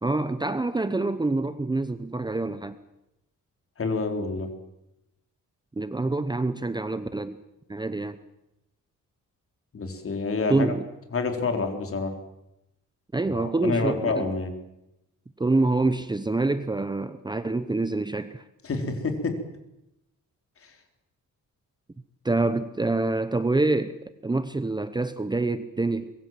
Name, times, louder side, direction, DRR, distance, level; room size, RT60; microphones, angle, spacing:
voice 1, 0.0-2.8 5.8-7.4 7.7-8.2 10.5-10.9 13.1-14.3 15.4-18.4 22.2-26.1, right 2 dB, 15° right, 12 dB, 0.8 m, -26 dB
voice 2, 3.8-4.5 9.7-10.7 11.1-12.1 13.2-14.5 18.6-19.4 20.6-20.7, left 4 dB, 45° left, 6 dB, 3.9 m, -28 dB
24.5 x 21.5 x 7.6 m, 0.89 s
wide cardioid pair, 140°, 32 cm